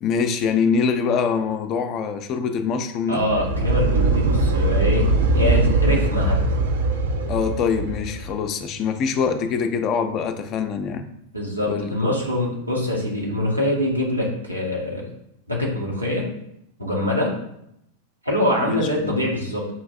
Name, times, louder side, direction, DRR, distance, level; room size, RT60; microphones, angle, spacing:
voice 1, 0.0-3.3 7.3-11.1 11.7-12.1 18.7-19.3, left 6 dB, 35° left, 8 dB, 0.4 m, -24 dB
voice 2, 3.1-6.4 11.3-15.1 15.5-16.2 16.8-17.3 18.2-19.7, left 1 dB, 90° right, -4 dB, 1.0 m, -24 dB
sound 1, 3.2-8.4, right 2 dB, 65° right, 0.4 m, -21 dB
5.6 x 2.6 x 2.4 m, 0.79 s
figure-of-eight pair, 90°, 0 cm